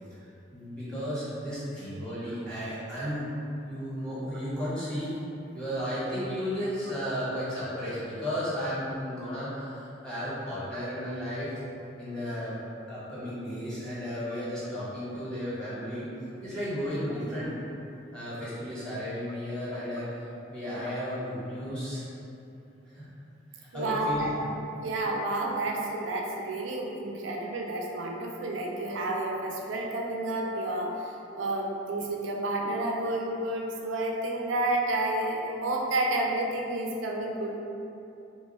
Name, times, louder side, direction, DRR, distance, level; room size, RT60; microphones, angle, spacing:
voice 1, 0.5-3.3 3.6-5.2 5.5-11.5 12.0-12.6 12.9-16.1 16.4-17.6 18.1-22.0 22.8-23.1 23.5-24.2, equal, 5° left, -11 dB, 1.0 m, -34 dB
voice 2, 23.7-24.4 24.8-37.6, right 1 dB, 85° right, -1 dB, 0.4 m, -30 dB
3.0 x 2.3 x 4.1 m, 2.8 s
head